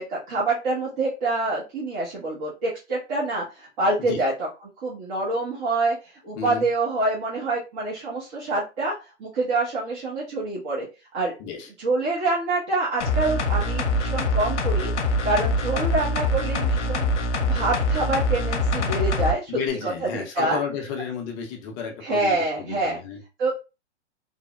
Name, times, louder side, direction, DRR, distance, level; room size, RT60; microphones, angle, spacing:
voice 1, 0.0-4.5 4.8-8.9 9.2-10.8 11.1-11.3 11.8-17.1 17.4-19.5 19.8-20.6 22.0-23.0 23.4-23.5, right 2 dB, 40° right, -5 dB, 1.0 m, -26 dB
voice 2, 6.4-6.7 11.4-11.7 19.5-23.2, left 6 dB, 30° left, 2 dB, 0.5 m, -32 dB
sound 1, 13.0-19.3 19.7-19.8, left 1 dB, 80° left, 0.6 m, -24 dB
3.1 x 2.1 x 2.3 m, 0.29 s
hypercardioid pair, 115°, 35 cm